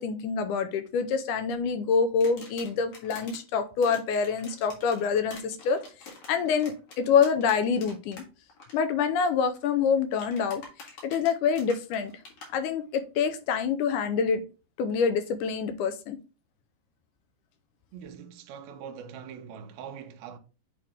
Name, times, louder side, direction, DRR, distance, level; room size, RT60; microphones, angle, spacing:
voice 1, 0.0-5.8 6.3-8.2 8.7-10.6 11.0-12.1 12.5-14.4 14.8-16.2, left 6 dB, 75° left, 2.1 m, -26 dB
sound 1, 2.2-3.4 3.8-8.2 8.5-8.7 10.1-12.5, left 3 dB, 60° left, 2.9 m, -46 dB
voice 2, 17.9-20.4, right 7 dB, 75° right, 1.8 m, -42 dB
8.6 x 3.3 x 3.5 m
omnidirectional pair, 3.8 m